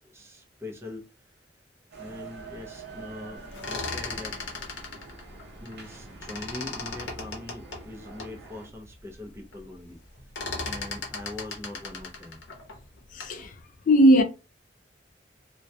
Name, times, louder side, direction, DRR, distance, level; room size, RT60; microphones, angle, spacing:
voice 1, 0.1-1.1 2.0-4.4 5.6-10.3 10.6-12.4, left 2 dB, 15° right, 0.5 m, -42 dB
sound 1, 1.9-8.7, right 4 dB, 65° right, 0.7 m, -46 dB
sound 2, 3.4-6.0 6.2-8.4 8.9-9.0 9.2-9.6 9.9-13.4, left 3 dB, 90° left, 0.6 m, -37 dB
voice 2, 13.1-13.6 13.9-14.2, equal, 50° left, 0.3 m, -18 dB
2.2 x 2.2 x 2.6 m
head